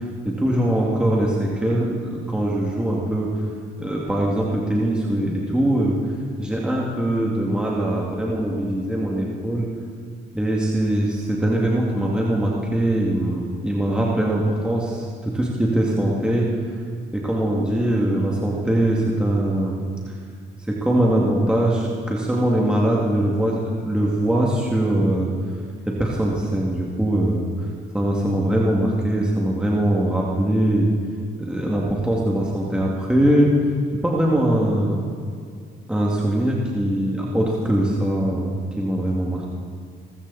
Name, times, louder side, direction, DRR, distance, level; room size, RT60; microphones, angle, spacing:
voice 1, 0.0-3.3 3.8-6.0 6.4-9.7 10.3-16.5 17.1-19.8 20.1-20.2 20.7-25.3 25.9-27.7 27.9-30.9 31.4-33.5 34.0-35.0 35.9-39.5, right 1 dB, 5° right, -4 dB, 2.4 m, -22 dB
20.5 x 14.5 x 4.3 m, 2.3 s
cardioid pair, 90°, 20 cm